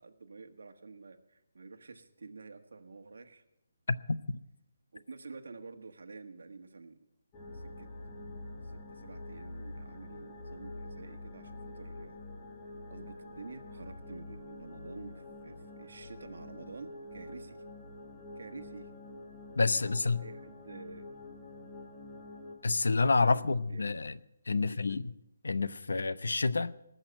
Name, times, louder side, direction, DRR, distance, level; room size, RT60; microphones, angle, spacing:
voice 1, 0.0-3.4 4.9-6.9 7.5-7.9 8.6-12.2 12.9-17.6 18.4-18.9 19.7-21.1 23.2-23.9 24.5-24.8, right 4 dB, 70° right, 1.5 m, -49 dB
sound 1, 7.3-22.6, left 2 dB, 15° left, 1.3 m, -46 dB
voice 2, 19.6-20.2 22.6-24.2 24.5-25.1 25.4-26.7, left 3 dB, 80° left, 0.7 m, -28 dB
19.5 x 6.6 x 7.7 m
hypercardioid pair, 180°, 0 cm